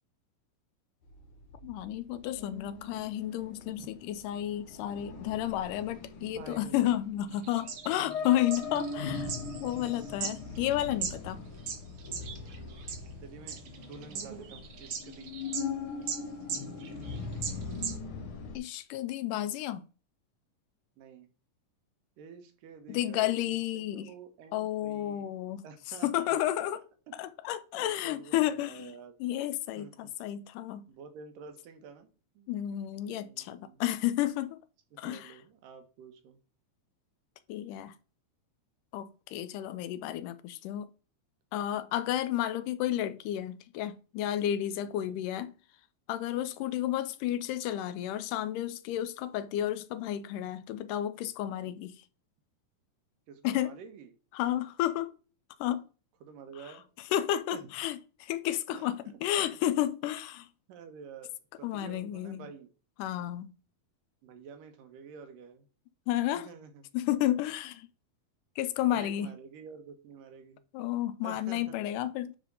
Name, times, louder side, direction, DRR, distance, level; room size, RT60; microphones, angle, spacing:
sound 1, 1.0-18.6, left 4 dB, 65° left, 1.4 m, -41 dB
voice 1, 1.6-9.3 9.6-11.4 18.5-19.8 22.9-24.1 24.5-26.8 27.1-28.9 29.2-30.9 32.5-34.6 35.0-35.4 37.5-38.0 38.9-40.9 41.5-45.5 46.1-52.0 53.4-53.8 54.3-55.1 55.6-55.9 56.6-56.7 57.1-60.5 61.6-62.5 63.0-63.5 66.1-66.5 66.9-67.9 68.6-69.3 70.7-72.4, left 12 dB, 80° left, 2.1 m, -32 dB
voice 2, 6.2-7.0 8.0-8.3 8.7-8.8 10.1-10.5 13.2-15.3 21.0-21.3 22.2-25.3 25.6-26.3 27.7-29.1 29.8-29.9 30.9-32.5 33.0-33.8 35.0-36.4 44.8-45.1 46.3-46.6 51.6-51.8 53.3-54.1 56.2-56.8 57.5-57.6 58.7-59.6 60.7-61.3 61.6-62.7 64.2-65.7 66.3-66.8 68.9-70.6 71.2-71.8, right 6 dB, 80° right, 2.8 m, -49 dB
sound 2, 7.3-11.1 11.6-13.1 13.5-15.7 16.0-16.2 16.5-18.0, right 6 dB, 60° right, 1.6 m, -39 dB
9.5 x 3.5 x 4.0 m
omnidirectional pair, 3.8 m